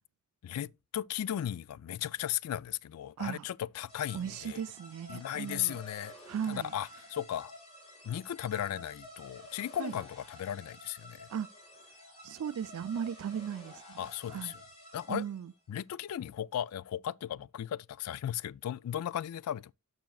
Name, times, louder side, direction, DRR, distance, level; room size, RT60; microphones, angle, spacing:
voice 1, 0.4-4.6 5.1-6.1 6.5-7.5 8.0-11.3 14.0-14.5 14.9-15.2 15.7-19.7, left 11 dB, 75° left, 0.3 m, -36 dB
sound 1, 3.9-15.5, left 1 dB, 30° left, 4.6 m, -52 dB
voice 2, 4.1-5.8 6.3-6.7 9.8-9.9 11.3-11.5 12.2-14.5 15.1-15.5, right 8 dB, 70° right, 0.3 m, -37 dB
10.5 x 6.1 x 2.3 m
head